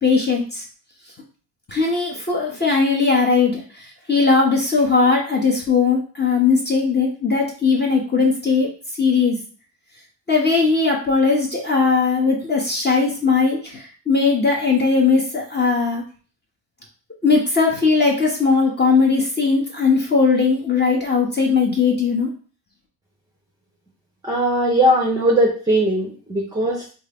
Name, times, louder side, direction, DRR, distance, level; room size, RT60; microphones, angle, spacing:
voice 1, 0.0-0.6 1.7-8.7 9.0-9.4 10.3-16.0 17.2-22.3, left 4 dB, 20° left, -1 dB, 0.9 m, -19 dB
voice 2, 24.2-26.9, right 1 dB, 10° right, -2 dB, 0.7 m, -19 dB
3.6 x 2.5 x 3.4 m, 0.38 s
cardioid pair, 110°, 46 cm